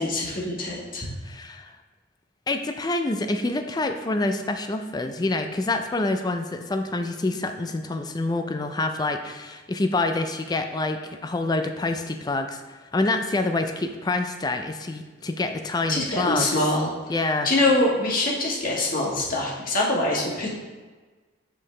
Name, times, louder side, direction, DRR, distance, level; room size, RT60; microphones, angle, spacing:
voice 1, 0.0-1.1 15.9-16.9 17.4-20.5, left 2 dB, 45° left, -3 dB, 1.5 m, -24 dB
voice 2, 1.2-1.7 2.5-16.7 17.1-17.5, left 2 dB, 20° left, 6 dB, 0.4 m, -27 dB
7.5 x 5.3 x 3.3 m, 1.3 s
head